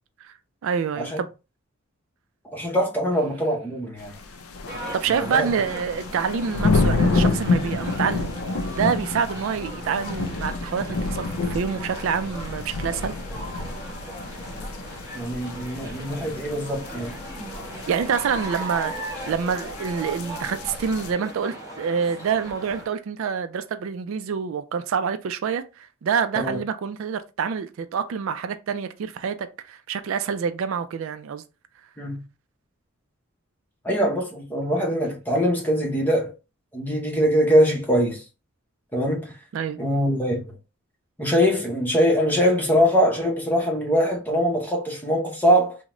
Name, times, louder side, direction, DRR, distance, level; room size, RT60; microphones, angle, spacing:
voice 1, 0.6-1.3 4.9-8.3 8.7-13.2 17.9-31.4 39.5-39.8, right 6 dB, 70° right, 0.3 m, -27 dB
voice 2, 2.4-4.2 5.1-5.5 15.1-17.1 26.4-26.6 32.0-32.2 33.8-36.3 36.7-38.2 38.9-39.3 39.8-40.4 41.2-45.8, equal, 10° left, 0.7 m, -22 dB
sound 1, 4.0-21.1, left 3 dB, 90° left, 0.5 m, -29 dB
sound 2, 4.7-22.9, right 1 dB, 15° right, 0.9 m, -38 dB
3.6 x 2.1 x 2.9 m
head